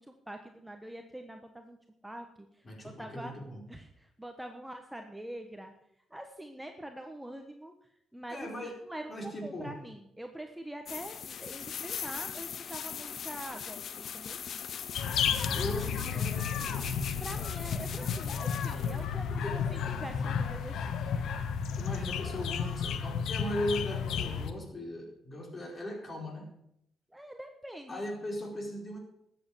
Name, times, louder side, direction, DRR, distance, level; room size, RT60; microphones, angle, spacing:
voice 1, 0.0-1.8 2.0-3.3 3.7-5.7 6.1-7.7 8.1-14.4 17.2-21.3 27.1-28.1, right 1 dB, 5° right, 4 dB, 1.3 m, -44 dB
voice 2, 2.6-3.6 8.3-8.8 9.1-9.7 15.5-16.9 19.3-19.6 21.8-26.5 27.9-29.0, left 1 dB, 35° left, 1 dB, 4.6 m, -38 dB
sound 1, 10.8-19.0, left 8 dB, 60° left, 0.7 m, -40 dB
sound 2, 14.9-24.5, left 7 dB, 75° left, 1.2 m, -32 dB
13.0 x 8.4 x 7.2 m, 0.76 s
cardioid pair, 90°, 0 cm